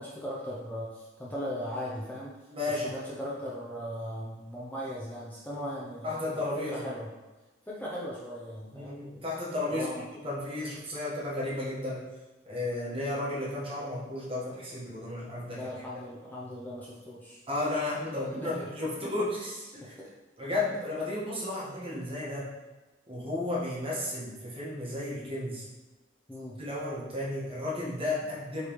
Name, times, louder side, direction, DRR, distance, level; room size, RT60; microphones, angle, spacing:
voice 1, 0.0-2.3 2.7-6.2 6.6-7.1 7.7-9.0 9.7-10.1 15.5-17.4 18.4-18.5 19.8-20.1 26.3-26.6, equal, 10° left, -7 dB, 0.5 m, -38 dB
voice 2, 2.5-3.1 5.5-5.6 6.0-6.9 8.7-9.9 10.2-12.1 12.5-15.8 17.5-19.9 20.4-22.5 23.1-25.7 26.6-28.7, left 2 dB, 30° right, -6 dB, 1.1 m, -33 dB
5.1 x 3.2 x 3.0 m, 1.2 s
head